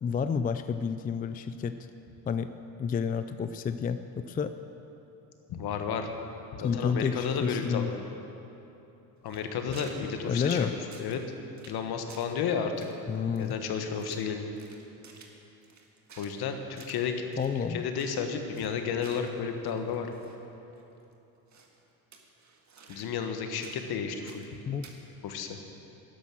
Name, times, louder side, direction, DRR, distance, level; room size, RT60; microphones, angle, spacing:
voice 1, 0.0-1.8 2.3-2.5 2.8-4.5 6.6-7.9 10.2-10.7 13.1-13.6 17.4-17.9 24.7-24.9, left 6 dB, 20° left, 10 dB, 0.4 m, -30 dB
voice 2, 5.5-6.1 6.5-8.0 9.2-10.7 11.0-11.2 11.7-12.9 13.4-14.4 16.2-17.3 17.7-20.1 22.9-24.5 25.2-25.6, left 6 dB, 60° left, 6 dB, 1.5 m, -32 dB
sound 1, 9.3-10.1 10.4-11.3 11.6-11.8 12.1-12.4 12.8-14.3 14.6-16.4 16.8-17.0 17.3-17.5 17.8-18.2 18.5-20.4 20.7-20.8 21.5-21.8 22.1-23.3 23.6-24.5 24.8-25.0, right 5 dB, 40° right, 1.8 m, -52 dB
12.0 x 10.0 x 6.2 m, 3.0 s
supercardioid pair, 80°, 42 cm